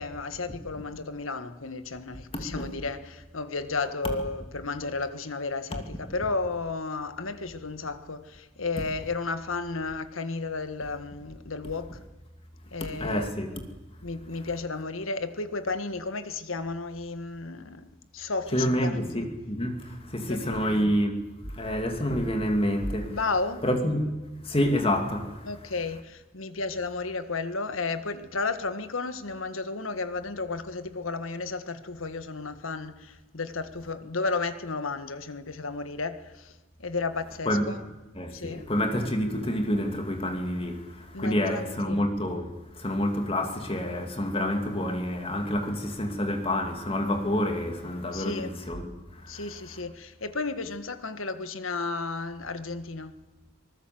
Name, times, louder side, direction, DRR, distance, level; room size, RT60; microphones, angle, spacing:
voice 1, 0.0-12.0 12.7-13.4 14.0-17.8 18.1-19.3 20.2-21.0 23.1-23.6 25.4-36.5 36.8-37.8 38.3-38.7 41.1-42.0 48.1-48.5 49.3-53.2, left 3 dB, 90° left, 1.6 m, -33 dB
voice 2, 2.3-2.7 5.7-5.8 13.0-13.5 18.5-21.2 21.5-23.2 23.6-24.1 24.4-25.5 37.5-37.8 38.1-49.4, equal, 30° left, 2.6 m, -28 dB
25.0 x 20.0 x 7.8 m
head